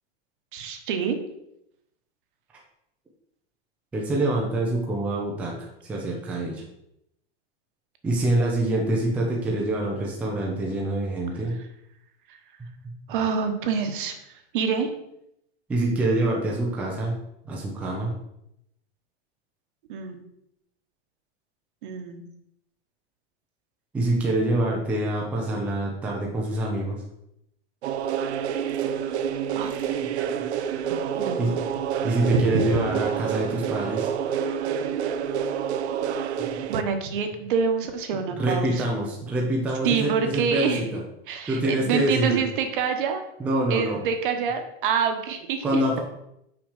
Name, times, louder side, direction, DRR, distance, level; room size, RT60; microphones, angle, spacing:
voice 1, 0.5-1.2 13.1-14.1 14.5-14.9 19.9-20.2 21.8-22.2 29.5-29.9 31.2-31.4 32.3-32.6 36.7-38.8 39.8-40.9 41.3-43.2 43.7-45.8, right 6 dB, 50° right, 7 dB, 1.2 m, -26 dB
voice 2, 3.9-6.6 8.0-11.6 15.7-17.2 17.5-18.1 23.9-27.0 31.4-31.7 32.0-34.1 38.3-41.0 41.5-42.4 43.4-44.0 45.6-46.0, right 1 dB, 5° right, -2 dB, 0.6 m, -25 dB
sound 1, 27.8-36.8, right 8 dB, 75° right, 0.8 m, -28 dB
6.2 x 5.0 x 6.5 m, 0.79 s
supercardioid pair, 175°, 33 cm